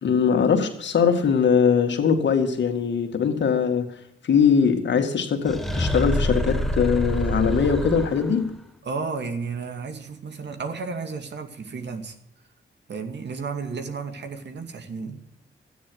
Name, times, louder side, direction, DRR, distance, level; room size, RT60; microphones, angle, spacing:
voice 1, 0.0-4.0 4.2-8.5, left 6 dB, 65° left, 2.1 m, -21 dB
sound 1, 5.5-8.5, equal, ahead, 1.4 m, -26 dB
voice 2, 8.8-12.2 12.9-15.2, right 4 dB, 65° right, 2.2 m, -32 dB
13.0 x 9.6 x 7.8 m
cardioid pair, 65°, 20 cm